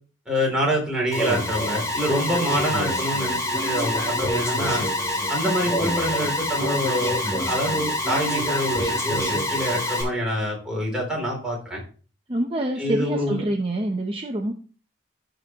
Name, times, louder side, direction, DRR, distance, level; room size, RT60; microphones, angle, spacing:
voice 1, 0.2-4.8 5.3-11.8 12.8-13.4, equal, 5° right, -2 dB, 3.4 m, -26 dB
Alarm, 1.1-10.0, left 1 dB, 20° left, 3.1 m, -26 dB
voice 2, 12.3-14.5, right 1 dB, 30° right, 2 dB, 0.8 m, -26 dB
15.0 x 5.2 x 3.0 m, 0.39 s
head